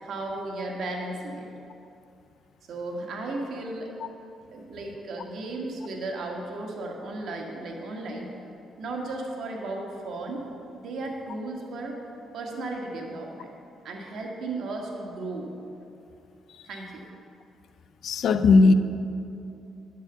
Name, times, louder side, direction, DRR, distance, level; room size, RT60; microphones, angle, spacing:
voice 1, 0.0-1.5 2.7-3.9 4.5-8.3 8.8-10.5 10.7-12.0 12.3-13.5 13.8-15.5 16.6-17.0, right 2 dB, 65° right, 0 dB, 1.8 m, -35 dB
voice 2, 18.0-18.7, left 3 dB, 70° left, 11 dB, 0.5 m, -17 dB
11.0 x 4.8 x 8.0 m, 2.6 s
cardioid pair, 90°, 0 cm